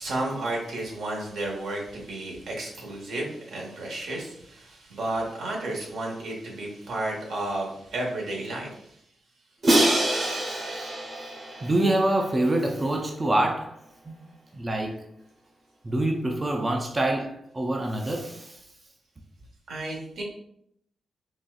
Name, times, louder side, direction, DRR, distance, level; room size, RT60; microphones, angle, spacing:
voice 1, 0.0-8.9 19.7-20.2, right 2 dB, 85° right, 0.9 m, -32 dB
Crash cymbal, 9.6-12.6, right 1 dB, 45° right, 0.8 m, -25 dB
voice 2, 11.6-13.8 14.0-14.1 14.5-15.0 15.8-18.7, right 1 dB, 25° right, 0.4 m, -26 dB
4.0 x 2.3 x 2.4 m
wide cardioid pair, 120°, 0 cm